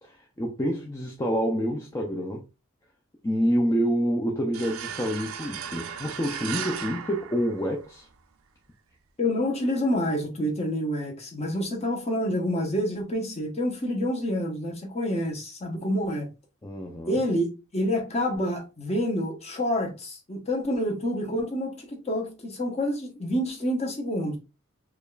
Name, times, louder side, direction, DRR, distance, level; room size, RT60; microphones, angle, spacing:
voice 1, 0.0-2.4 3.2-8.1 16.6-17.2, equal, 15° left, 0.4 m, -27 dB
sound 1, 4.5-8.1, right 7 dB, 85° right, 0.5 m, -36 dB
voice 2, 9.2-16.3 17.1-17.5 17.7-24.4, equal, 30° left, 0.9 m, -28 dB
4.9 x 2.4 x 2.2 m
head